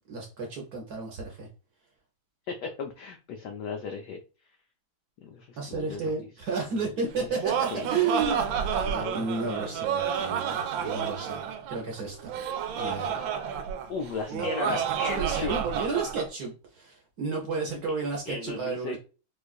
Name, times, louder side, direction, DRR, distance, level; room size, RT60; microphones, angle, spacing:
voice 1, 0.1-1.5 5.6-8.4 9.1-11.4 11.7-12.3 12.8-13.1 14.3-19.0, right 4 dB, 55° right, 0 dB, 1.2 m, -32 dB
voice 2, 2.5-4.2 5.2-6.3 6.7-6.8 7.2-7.3 7.7-7.9 8.8-9.9 13.1-13.6 13.9-15.6 18.3-19.0, left 5 dB, 80° left, 4 dB, 0.9 m, -36 dB
Laughter, 7.1-16.3, right 8 dB, 75° right, 1.3 m, -30 dB
4.5 x 2.4 x 2.4 m, 0.33 s
omnidirectional pair, 2.3 m